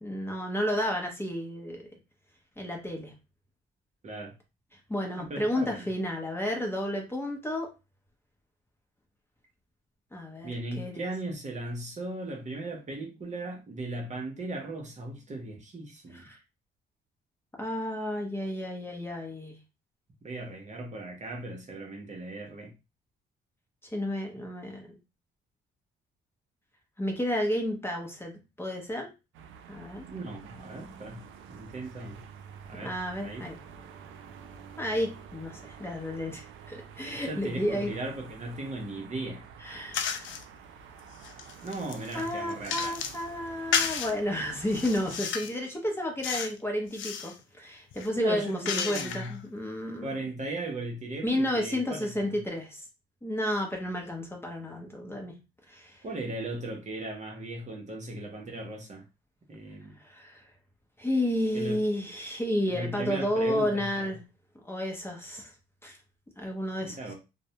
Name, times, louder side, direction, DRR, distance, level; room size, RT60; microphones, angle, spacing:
voice 1, 0.0-1.8 2.6-3.1 4.7-7.7 10.1-11.1 16.1-16.4 17.6-19.6 23.9-24.9 27.0-29.1 29.7-30.1 32.8-33.6 34.8-37.9 39.6-40.3 42.1-50.2 51.2-52.8 53.2-55.3 55.7-56.0 60.0-60.4 61.0-64.2 64.6-65.5 65.8-66.0 66.4-67.1, left 1 dB, 10° left, 0.7 m, -31 dB
voice 2, 5.1-5.9 10.4-16.3 20.2-22.7 30.1-31.2 31.5-32.2 32.7-33.5 37.1-39.4 41.6-42.9 48.2-49.4 50.0-52.4 56.0-59.0 59.5-60.0 61.5-61.8 62.7-64.1 66.8-67.1, right 2 dB, 35° right, 0.7 m, -37 dB
sound 1, 29.3-45.2, right 7 dB, 80° right, 0.4 m, -48 dB
sound 2, 39.9-40.4 41.0-43.2 43.7-44.1 44.6-45.6 46.2-46.6 46.9-47.3 47.9-49.4, left 7 dB, 75° left, 0.4 m, -33 dB
2.3 x 2.0 x 2.8 m
cardioid pair, 90°, 20 cm